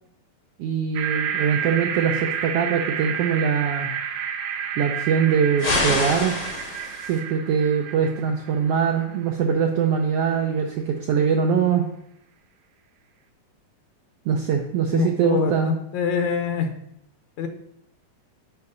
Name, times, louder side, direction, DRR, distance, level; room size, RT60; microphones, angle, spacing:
voice 1, 0.6-3.9 4.8-6.4 7.0-11.9 14.3-15.7, right 7 dB, 90° right, 3 dB, 1.3 m, -22 dB
sound 1, 1.0-9.2, right 8 dB, 75° right, 1.9 m, -30 dB
sound 2, 5.6-7.2, left 2 dB, 55° left, 0.8 m, -26 dB
voice 2, 14.9-16.7 17.4-17.5, left 6 dB, 75° left, 6 dB, 1.9 m, -25 dB
6.8 x 4.8 x 5.3 m, 0.77 s
omnidirectional pair, 3.4 m